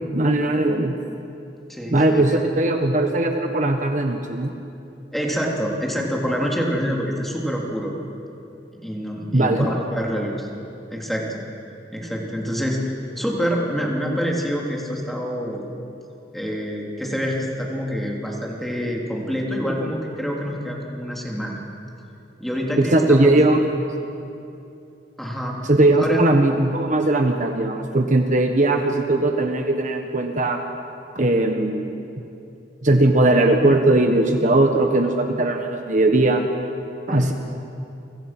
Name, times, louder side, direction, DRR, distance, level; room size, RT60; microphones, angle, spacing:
voice 1, 0.1-0.9 1.9-4.5 9.3-9.7 22.8-23.6 25.7-30.6 31.1-32.2 32.8-36.5 37.1-37.3, right 2 dB, 45° right, 4 dB, 1.4 m, -19 dB
voice 2, 1.7-2.2 5.1-7.9 8.8-10.5 10.9-11.4 11.9-15.7 16.3-21.6 22.4-23.4 25.2-25.6 26.0-26.2 37.1-37.3, equal, ahead, -2 dB, 3.4 m, -26 dB
30.0 x 25.0 x 6.1 m, 2.8 s
head